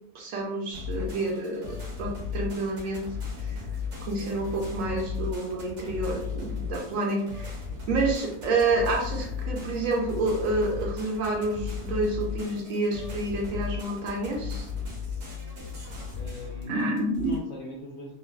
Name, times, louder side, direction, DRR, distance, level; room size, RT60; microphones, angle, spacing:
voice 1, 0.1-3.0 3.4-3.6 4.1-7.5 7.9-14.7 16.6-17.3, right 2 dB, 70° right, 0 dB, 0.9 m, -29 dB
sound 1, 0.7-17.4, left 6 dB, 85° right, 1.4 m, -35 dB
voice 2, 16.1-18.1, left 2 dB, 60° left, -3 dB, 0.7 m, -39 dB
3.3 x 2.2 x 2.3 m, 0.76 s
omnidirectional pair, 1.6 m